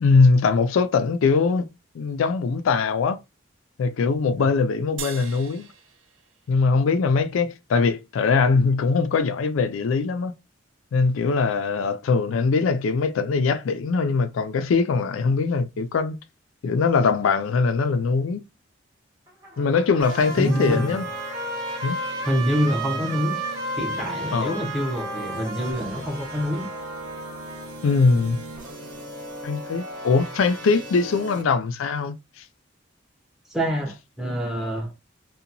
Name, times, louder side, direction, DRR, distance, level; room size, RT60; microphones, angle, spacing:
voice 1, 0.0-1.6 1.9-3.2 3.8-5.7 6.5-10.3 10.9-16.2 16.6-18.4 19.6-21.1 21.8-22.0 24.3-24.7 27.8-28.4 29.4-32.4, left 4 dB, 80° left, 0.4 m, -21 dB
sound 1, 5.0-7.6, right 8 dB, 75° right, 0.5 m, -41 dB
Trumpet, 19.3-27.7, right 2 dB, 20° right, 1.1 m, -34 dB
sound 2, 20.0-31.4, equal, 45° right, 1.5 m, -38 dB
voice 2, 20.4-20.9 22.3-23.4 23.8-26.7 33.5-34.9, equal, ahead, 0.7 m, -26 dB
2.8 x 2.2 x 2.5 m
head